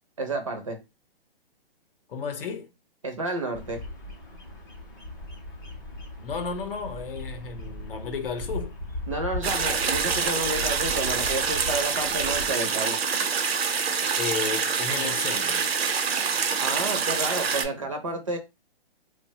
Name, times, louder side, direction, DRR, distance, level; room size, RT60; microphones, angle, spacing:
voice 1, 0.2-0.8 3.0-3.8 9.1-13.0 16.6-18.4, right 2 dB, 35° right, 0.4 m, -30 dB
voice 2, 2.1-2.7 6.2-8.7 14.1-15.7, left 5 dB, 65° left, 0.7 m, -33 dB
Bird vocalization bird call bird song, 3.5-12.5, left 1 dB, 20° left, 0.6 m, -38 dB
sound 1, 9.4-17.6, right 6 dB, 85° right, 0.7 m, -26 dB
3.0 x 2.1 x 2.7 m
hypercardioid pair, 175°, 30 cm